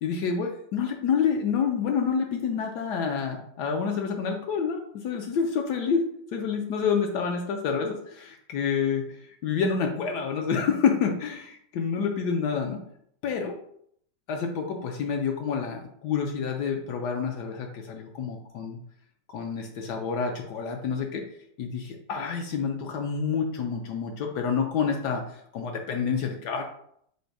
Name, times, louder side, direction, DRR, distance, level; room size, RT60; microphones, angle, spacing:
voice 1, 0.0-6.0 6.3-12.8 13.2-13.5 14.3-18.8 19.3-21.2 21.6-25.2 25.5-26.6, left 6 dB, 75° left, 3 dB, 1.1 m, -28 dB
5.2 x 2.2 x 4.6 m, 0.69 s
omnidirectional pair, 2.0 m